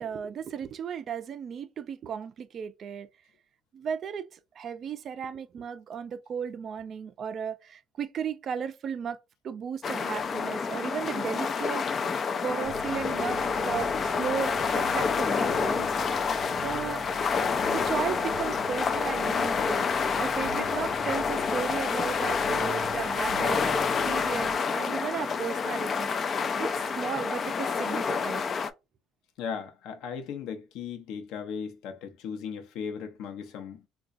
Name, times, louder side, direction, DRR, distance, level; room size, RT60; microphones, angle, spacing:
voice 1, 0.0-3.1 3.7-9.2 9.4-11.9 12.4-15.9 16.5-17.0 17.7-19.9 20.2-26.1 26.6-28.4, right 7 dB, 45° right, 0.4 m, -35 dB
sound 1, 9.8-28.7, left 5 dB, 35° left, 0.3 m, -28 dB
sound 2, 12.6-24.5, right 2 dB, 20° right, 0.7 m, -43 dB
voice 2, 29.4-33.8, left 6 dB, 70° left, 0.7 m, -37 dB
3.9 x 2.3 x 2.5 m
cardioid pair, 130°, 0 cm